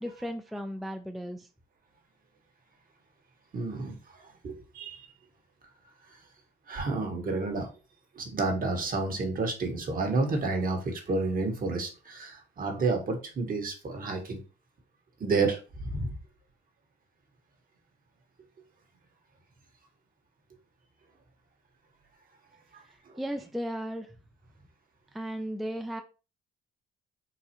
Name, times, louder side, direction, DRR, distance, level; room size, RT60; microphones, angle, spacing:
voice 1, 0.0-1.5 23.2-24.1 25.1-26.0, equal, ahead, 6 dB, 0.3 m, -35 dB
voice 2, 3.5-5.1 6.1-6.2 6.7-7.7 8.1-14.4 15.2-16.2 22.7-23.2, right 3 dB, 45° right, 3 dB, 1.1 m, -30 dB
3.9 x 2.4 x 2.8 m, 0.33 s
cardioid pair, 90°, 20 cm